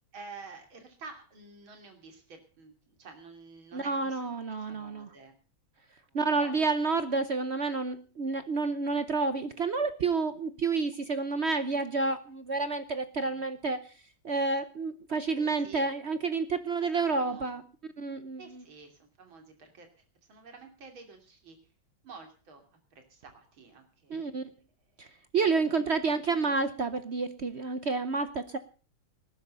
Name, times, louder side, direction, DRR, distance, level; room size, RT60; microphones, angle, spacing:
voice 1, 0.1-5.3 5.8-6.7 15.4-15.9 16.9-17.5 18.4-19.9 20.3-21.6 22.0-24.5 24.9-25.1 25.5-25.9, right 4 dB, 80° right, 5 dB, 3.7 m, -50 dB
voice 2, 3.7-5.1 6.1-13.8 14.2-17.6 18.0-18.4 24.1-24.5 25.0-25.1 25.3-28.6, right 4 dB, 55° right, 12 dB, 0.7 m, -29 dB
19.0 x 10.5 x 5.4 m, 0.36 s
omnidirectional pair, 2.2 m